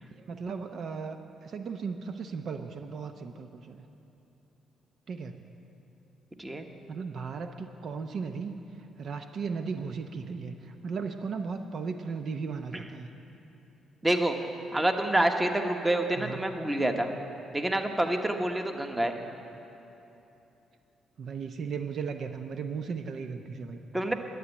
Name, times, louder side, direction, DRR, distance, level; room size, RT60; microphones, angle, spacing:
voice 1, 0.1-3.9 5.1-5.4 6.9-13.1 16.2-16.4 21.2-23.8, right 5 dB, 60° right, 7 dB, 0.7 m, -36 dB
voice 2, 14.0-14.4 14.7-17.1 17.5-19.1 23.9-24.1, right 1 dB, 15° right, 5 dB, 1.2 m, -27 dB
11.5 x 9.0 x 9.9 m, 3.0 s
cardioid pair, 90°, 0 cm